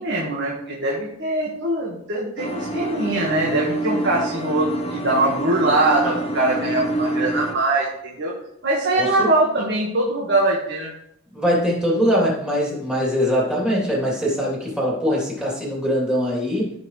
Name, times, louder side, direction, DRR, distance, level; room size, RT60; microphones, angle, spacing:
voice 1, 0.0-8.3 8.6-10.9, right 2 dB, 55° right, -3 dB, 1.7 m, -22 dB
sound 1, 2.4-7.5, right 1 dB, 30° left, 1.1 m, -26 dB
voice 2, 9.0-9.3 11.3-16.7, equal, 5° right, -5 dB, 3.2 m, -22 dB
16.0 x 5.9 x 3.3 m, 0.75 s
head